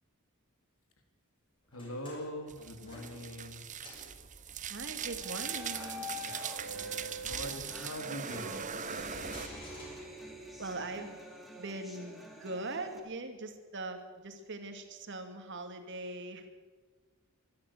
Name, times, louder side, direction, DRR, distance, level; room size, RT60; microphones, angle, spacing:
voice 1, 1.7-3.8 6.6-8.6 8.9-9.3, left 1 dB, 70° left, 5 dB, 3.0 m, -43 dB
sound 1, 1.7-3.6 3.8-4.1 5.2-8.4 9.3-10.7, left 2 dB, 25° left, 6.7 m, -47 dB
sound 2, 2.5-9.5, right 7 dB, 35° right, 1.0 m, -40 dB
voice 2, 4.7-6.1 10.6-11.2 11.6-16.5, right 2 dB, 55° right, 6 dB, 2.4 m, -41 dB
sound 3, 5.0-13.0, right 1 dB, ahead, 3.0 m, -50 dB
25.0 x 12.5 x 8.5 m, 1.4 s
head